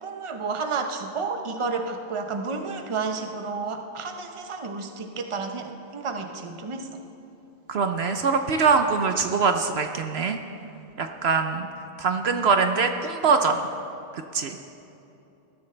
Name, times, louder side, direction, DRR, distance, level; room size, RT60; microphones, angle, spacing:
voice 1, 0.0-7.0, right 4 dB, 30° right, 5 dB, 0.8 m, -31 dB
voice 2, 7.7-10.4 11.0-11.7 12.0-13.6 14.1-14.6, right 5 dB, 65° right, 6 dB, 0.9 m, -23 dB
20.5 x 13.5 x 3.3 m, 2.8 s
omnidirectional pair, 1.2 m